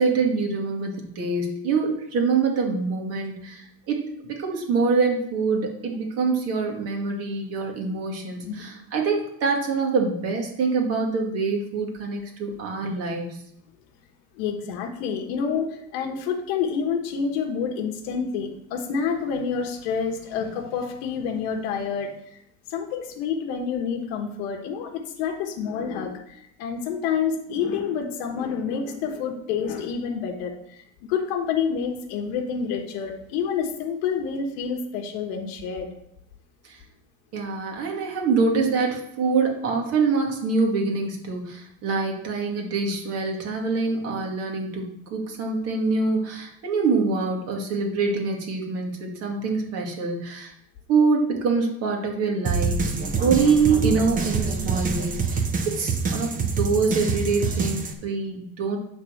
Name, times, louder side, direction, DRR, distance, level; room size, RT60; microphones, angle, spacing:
voice 1, 0.0-13.4 36.6-36.8 37.3-50.5 50.9-52.9 53.2-55.5 55.8-58.8, right 4 dB, 50° right, 1 dB, 2.2 m, -25 dB
voice 2, 8.4-8.8 14.4-22.4 22.7-30.8 31.1-35.9, left 6 dB, 85° left, 2 dB, 1.4 m, -28 dB
sound 1, 52.5-57.9, right 4 dB, 25° right, 1.0 m, -26 dB
9.3 x 4.1 x 6.4 m, 0.73 s
cardioid pair, 145°, 30 cm